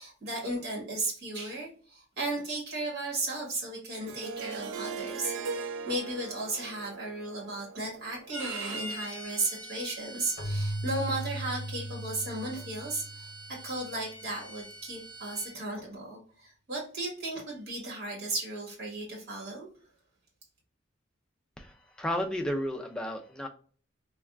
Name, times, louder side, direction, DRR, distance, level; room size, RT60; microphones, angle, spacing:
voice 1, 0.0-5.3 5.8-19.7, right 2 dB, 50° right, -2 dB, 1.3 m, -35 dB
Harp, 4.1-9.0, right 5 dB, 70° right, 0.4 m, -40 dB
Bowed string instrument, 8.3-15.5, right 2 dB, 90° right, 0.9 m, -43 dB
Keyboard (musical), 10.4-13.9, equal, 40° left, 0.7 m, -37 dB
voice 2, 21.6-23.5, equal, 5° left, 2 dB, 0.3 m, -33 dB
3.4 x 2.2 x 2.3 m, 0.43 s
head